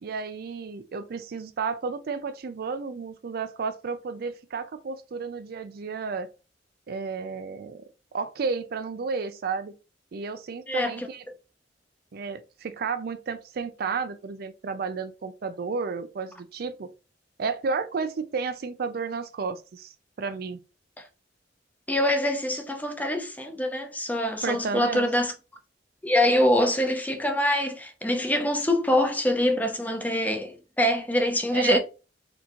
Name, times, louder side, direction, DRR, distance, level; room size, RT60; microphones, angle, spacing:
voice 1, 0.0-6.3 6.9-9.7 10.1-11.2 12.1-16.9 17.4-20.6 24.4-25.1 31.5-31.8, right 5 dB, 55° right, 0.4 m, -32 dB
voice 2, 10.7-11.1 21.9-25.3 26.0-31.8, left 1 dB, 10° left, 0.6 m, -24 dB
4.3 x 2.7 x 2.9 m
head